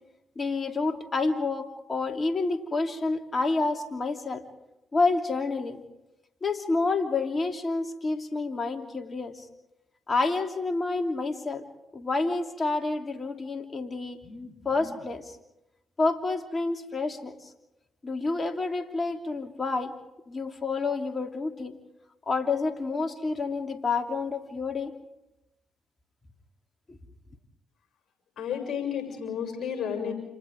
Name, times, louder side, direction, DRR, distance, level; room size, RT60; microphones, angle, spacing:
voice 1, 0.3-4.4 4.9-5.8 6.4-9.4 10.1-11.6 11.9-15.4 16.0-17.5 18.0-19.9 20.3-21.8 22.3-24.9 26.9-27.0, left 3 dB, 35° left, 4 dB, 3.1 m, -29 dB
voice 2, 28.4-30.1, left 8 dB, 60° left, 3 dB, 7.1 m, -31 dB
30.0 x 28.0 x 3.7 m, 0.89 s
hypercardioid pair, 45°, 0 cm